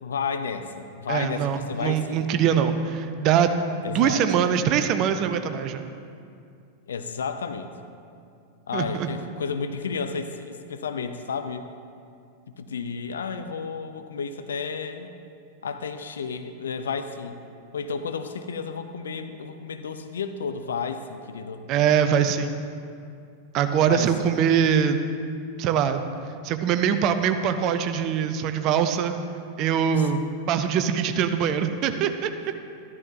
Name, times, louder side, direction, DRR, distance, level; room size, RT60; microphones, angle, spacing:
voice 1, 0.0-2.7 3.8-4.3 6.9-7.7 8.7-11.7 12.6-15.1 15.6-17.4 17.7-21.7 23.7-24.5 29.9-30.1, left 5 dB, 65° left, 9 dB, 0.6 m, -32 dB
voice 2, 1.1-3.5 3.9-5.8 8.7-9.1 21.7-22.5 23.5-25.0 25.6-26.0 26.4-29.2 29.6-32.3, right 8 dB, 40° right, 9 dB, 0.6 m, -23 dB
13.0 x 12.0 x 2.8 m, 2.4 s
figure-of-eight pair, 90°, 0 cm